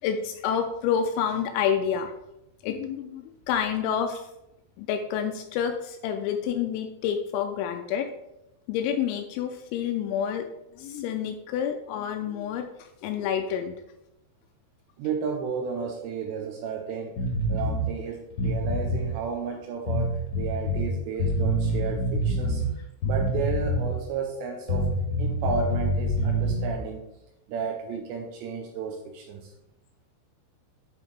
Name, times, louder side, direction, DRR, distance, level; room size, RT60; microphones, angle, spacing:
voice 1, 0.0-2.1 2.6-4.3 4.8-8.1 8.7-10.5 10.7-13.8, left 8 dB, 85° left, 6 dB, 2.7 m, -28 dB
voice 2, 15.0-17.2 17.5-22.6 23.0-27.0 27.5-29.5, right 5 dB, 80° right, 2 dB, 2.6 m, -33 dB
sound 1, 17.2-17.8 18.3-19.1 19.9-20.9 21.2-22.7 23.0-24.0 24.7-26.8, equal, 65° left, 1.5 m, -26 dB
9.8 x 3.6 x 4.6 m, 0.86 s
omnidirectional pair, 5.7 m